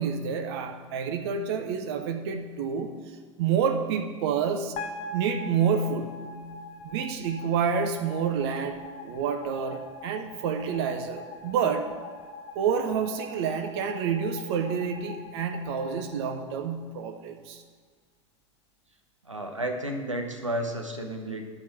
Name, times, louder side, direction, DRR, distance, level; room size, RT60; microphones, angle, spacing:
voice 1, 0.0-4.8 5.1-6.2 6.8-11.9 12.5-17.6, right 6 dB, 55° right, 6 dB, 0.7 m, -28 dB
sound 1, 4.8-17.0, left 2 dB, 40° left, 0.9 m, -43 dB
voice 2, 19.2-21.4, right 1 dB, 90° right, 3 dB, 0.9 m, -32 dB
12.0 x 4.4 x 6.0 m, 1.5 s
figure-of-eight pair, 75°, 16 cm